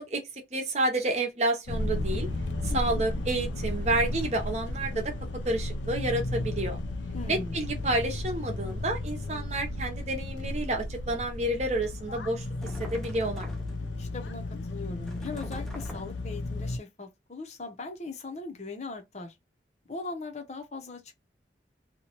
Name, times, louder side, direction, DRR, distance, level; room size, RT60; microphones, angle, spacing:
voice 1, 0.0-2.3 2.7-5.1 5.4-6.8 7.3-12.5 12.8-13.5, right 1 dB, 35° right, 0.8 m, -30 dB
sound 1, 1.7-16.8, left 1 dB, 85° left, 0.5 m, -34 dB
voice 2, 2.7-3.0 7.1-7.6 14.0-19.4 19.9-21.2, left 3 dB, 35° left, 0.7 m, -40 dB
sound 2, 12.6-13.9 15.1-16.3, equal, ahead, 0.5 m, -43 dB
2.8 x 2.3 x 2.9 m
head